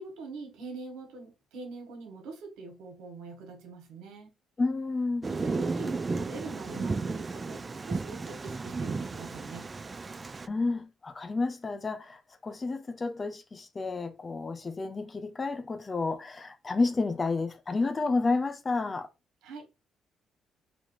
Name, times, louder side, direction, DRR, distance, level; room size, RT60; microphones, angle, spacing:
voice 1, 0.0-4.3 5.3-9.7 19.4-19.7, right 3 dB, 85° right, 1.3 m, -43 dB
voice 2, 4.6-5.3 10.5-19.1, left 3 dB, 35° left, 0.7 m, -30 dB
Thunder, 5.2-10.5, right 4 dB, 30° right, 0.3 m, -34 dB
4.1 x 2.9 x 3.1 m
supercardioid pair, 70°, 0 cm